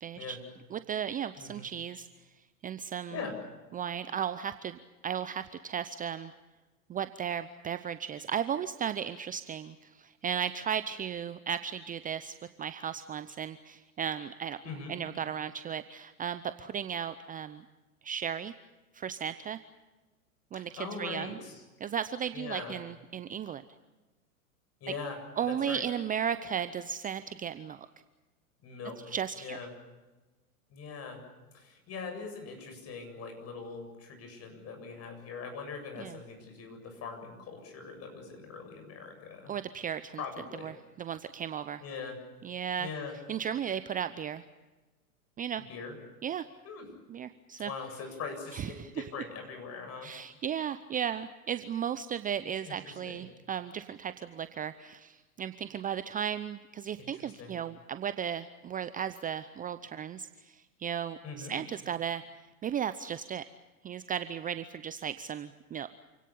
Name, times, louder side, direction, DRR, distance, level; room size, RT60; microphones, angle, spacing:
voice 1, 0.0-0.4 0.7-2.1 2.6-3.2 3.7-6.3 6.9-14.6 14.9-17.6 18.0-18.5 18.9-19.6 20.5-21.4 21.8-23.6 25.4-27.9 29.1-29.6 36.0-36.2 39.5-40.2 40.5-41.8 42.4-42.9 43.3-44.4 45.4-45.6 46.2-46.5 47.1-47.7 48.5-49.1 50.0-62.2 62.6-63.4 63.8-65.9, right 8 dB, 20° right, 12 dB, 0.7 m, -35 dB
voice 2, 20.5-21.6 22.3-22.8 24.8-25.2 25.5-25.8 28.6-29.7 30.7-31.2 31.5-39.5 40.2-40.7 41.8-42.2 42.8-43.1 45.7-46.0 46.6-46.9 47.6-50.1 52.6-53.2 57.0-57.5 61.2-61.5, left 5 dB, 35° left, 5 dB, 7.8 m, -42 dB
28.0 x 17.5 x 8.6 m, 1.2 s
hypercardioid pair, 95°, 43 cm